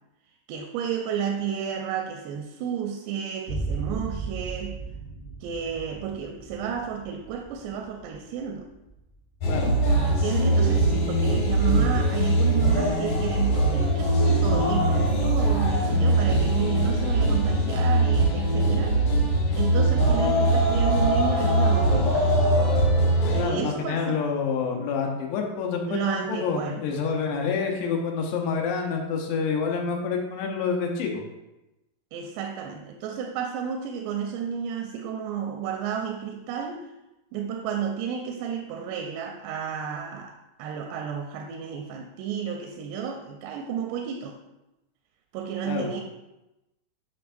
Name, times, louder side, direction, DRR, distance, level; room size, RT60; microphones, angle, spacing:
voice 1, 0.5-4.8 5.4-8.7 10.0-19.0 19.5-22.3 23.3-24.2 25.9-26.8 32.1-36.9 37.3-44.4 45.3-46.0, right 7 dB, 85° right, 3 dB, 2.6 m, -32 dB
sound 1, 3.5-10.9, right 4 dB, 35° left, 1.0 m, -37 dB
sound 2, 9.4-23.4, right 1 dB, 55° left, 3.0 m, -21 dB
voice 2, 23.4-31.2 45.7-45.9, left 5 dB, 85° left, 1 dB, 3.0 m, -28 dB
9.3 x 5.5 x 2.5 m, 0.96 s
omnidirectional pair, 4.7 m